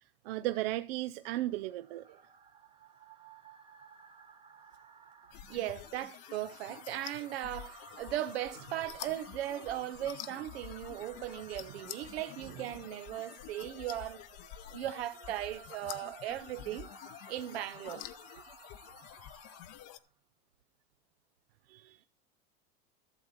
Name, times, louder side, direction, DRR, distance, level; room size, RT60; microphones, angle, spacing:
voice 1, 0.2-2.2 21.7-22.0, right 16 dB, 75° right, 0.6 m, -35 dB
sound 1, 1.2-20.1, right 5 dB, 15° right, 0.8 m, -56 dB
sound 2, 5.3-20.0, left 13 dB, 50° left, 0.8 m, -49 dB
voice 2, 5.5-14.2 14.7-16.9 17.3-18.1, right 13 dB, 90° right, 1.1 m, -38 dB
13.0 x 7.2 x 4.1 m
supercardioid pair, 125°, 30 cm